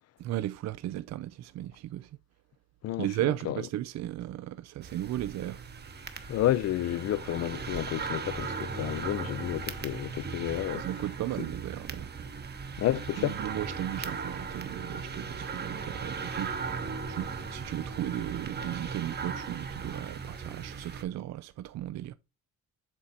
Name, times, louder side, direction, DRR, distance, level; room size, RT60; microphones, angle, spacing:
voice 1, 0.2-2.1 3.0-5.6 10.7-12.1 13.2-22.1, right 13 dB, 60° right, 0.4 m, -35 dB
sound 1, 4.8-21.0, right 5 dB, 35° right, 0.9 m, -38 dB
voice 2, 6.3-10.9 12.8-13.4, left 13 dB, 55° left, 0.5 m, -30 dB
7.4 x 3.8 x 4.2 m
cardioid pair, 90°, 30 cm